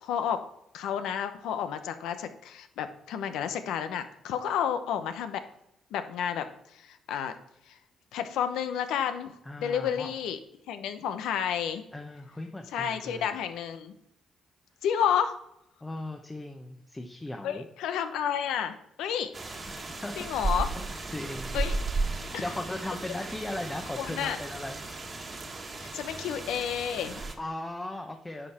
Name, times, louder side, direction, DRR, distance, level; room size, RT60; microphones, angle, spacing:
voice 1, 0.0-0.4 0.7-5.4 5.9-6.5 6.7-7.3 7.7-7.8 8.1-9.3 9.6-10.4 10.7-11.8 12.7-13.9 14.8-15.3 17.4-19.3 20.2-20.7 21.5-21.8 22.3-22.4 23.9-24.4 25.8-27.2, left 8 dB, 90° left, 9 dB, 0.9 m, -30 dB
voice 2, 9.4-10.1 11.9-13.4 15.8-17.6 19.7-20.3 20.7-21.6 22.2-24.8 26.1-26.3 27.0-28.5, left 1 dB, 15° left, 4 dB, 0.9 m, -38 dB
sound 1, 19.3-27.3, right 3 dB, 35° right, 1.5 m, -35 dB
10.0 x 5.3 x 4.3 m, 0.78 s
cardioid pair, 90°, 0 cm